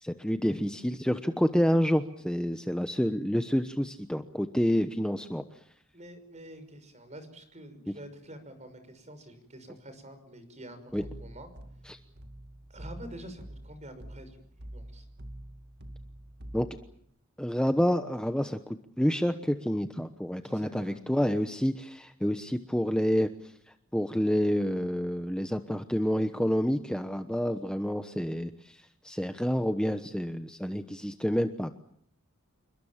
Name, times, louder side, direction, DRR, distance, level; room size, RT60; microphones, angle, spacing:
voice 1, 0.0-5.4 10.9-11.0 11.9-12.0 16.5-16.7 17.4-23.5 23.9-31.7, equal, 5° left, 8 dB, 1.0 m, -28 dB
voice 2, 5.9-11.5 12.7-14.4 14.7-15.1 20.4-21.0, right 1 dB, 35° right, 10 dB, 6.0 m, -47 dB
sound 1, 10.9-17.0, right 1 dB, 50° right, 2.2 m, -46 dB
28.5 x 22.5 x 7.4 m, 0.67 s
head